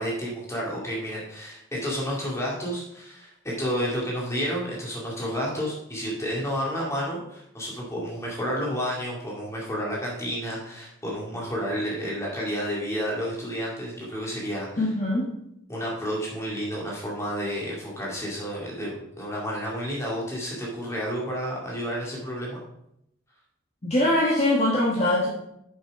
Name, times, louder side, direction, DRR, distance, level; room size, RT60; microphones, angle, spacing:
voice 1, 0.0-14.8 15.7-22.6, equal, 15° left, -4 dB, 2.3 m, -31 dB
voice 2, 14.8-15.3 23.8-25.3, left 1 dB, 30° left, -5 dB, 1.4 m, -22 dB
7.3 x 6.0 x 4.8 m, 0.78 s
head